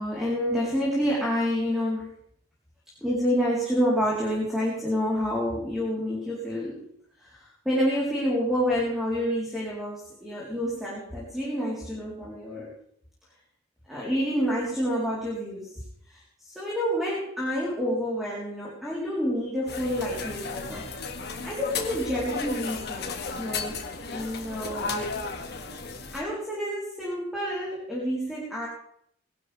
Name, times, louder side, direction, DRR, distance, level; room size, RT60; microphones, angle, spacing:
voice 1, 0.0-2.1 3.0-6.9 7.2-12.8 13.9-20.9 21.4-23.8 24.1-25.1 26.1-28.7, equal, ahead, -6 dB, 3.9 m, -28 dB
sound 1, 19.7-26.2, left 4 dB, 55° left, 2.0 m, -34 dB
21.0 x 12.0 x 3.5 m, 0.67 s
head